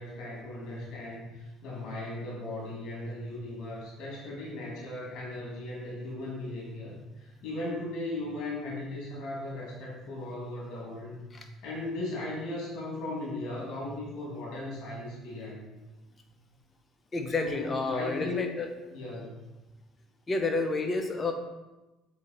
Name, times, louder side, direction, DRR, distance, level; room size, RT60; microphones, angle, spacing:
voice 1, 0.0-11.2 11.6-15.7 17.3-18.4 18.9-19.4, left 2 dB, 65° left, -5 dB, 2.0 m, -37 dB
voice 2, 17.1-18.7 20.3-21.3, left 3 dB, 30° left, 4 dB, 1.0 m, -30 dB
7.5 x 4.1 x 4.1 m, 1.1 s
cardioid pair, 100°, 0 cm